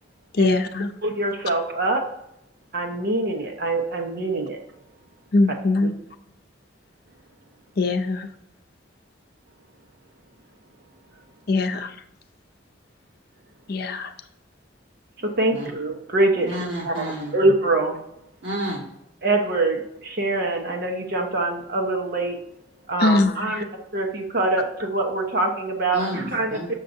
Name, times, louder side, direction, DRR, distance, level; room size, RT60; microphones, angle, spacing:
voice 1, 0.3-0.9 5.3-5.9 7.8-8.3 11.5-11.9 13.7-14.1 23.0-23.3, left 3 dB, 55° left, 6 dB, 0.6 m, -21 dB
voice 2, 1.0-2.0 2.7-4.6 5.8-5.9 15.2-16.5 16.8-16.9 17.3-18.0 19.2-22.4 22.9-23.7 23.9-26.8, right 2 dB, 55° right, 2 dB, 1.0 m, -24 dB
voice 3, 16.4-17.3 18.4-18.9 25.9-26.8, equal, 80° right, -4 dB, 1.7 m, -30 dB
6.5 x 6.5 x 2.7 m, 0.80 s
head